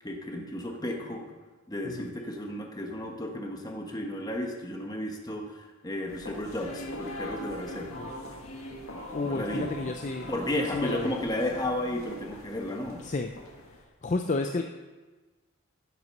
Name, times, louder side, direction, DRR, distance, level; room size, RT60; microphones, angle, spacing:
voice 1, 0.0-1.2 1.7-8.0 9.2-9.7 10.3-13.0, left 1 dB, 20° left, 2 dB, 1.3 m, -33 dB
sound 1, 6.1-13.8, left 1 dB, 80° left, 1.7 m, -41 dB
voice 2, 9.1-10.3 10.6-11.1 13.0-13.3 14.0-14.6, left 3 dB, 35° left, 6 dB, 0.4 m, -31 dB
11.0 x 8.0 x 5.4 m, 1.3 s
head